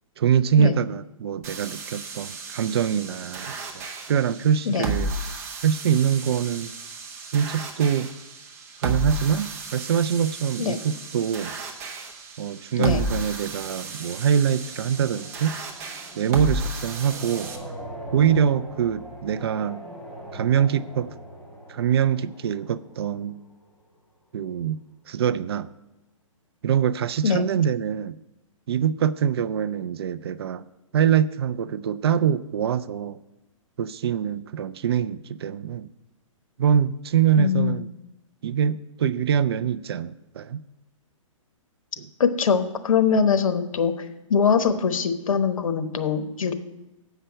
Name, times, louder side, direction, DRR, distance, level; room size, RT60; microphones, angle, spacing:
voice 1, 0.2-5.1 5.6-6.7 7.3-8.1 8.8-11.5 12.4-15.6 16.2-17.5 18.1-19.8 20.3-21.1 21.7-23.4 24.3-24.8 25.1-25.7 26.6-28.2 28.7-30.6 30.9-33.2 33.8-35.9 36.6-37.9 38.4-40.6 42.0-42.1, right 8 dB, 50° right, 15 dB, 0.4 m, -24 dB
sound 1, 1.4-17.6, right 2 dB, 25° right, 1.0 m, -34 dB
sound 2, 12.8-23.6, right 1 dB, ahead, 1.3 m, -42 dB
voice 2, 37.4-37.8 42.2-46.5, left 6 dB, 80° left, 10 dB, 1.0 m, -22 dB
8.0 x 5.6 x 7.6 m, 0.99 s
hypercardioid pair, 165°, 17 cm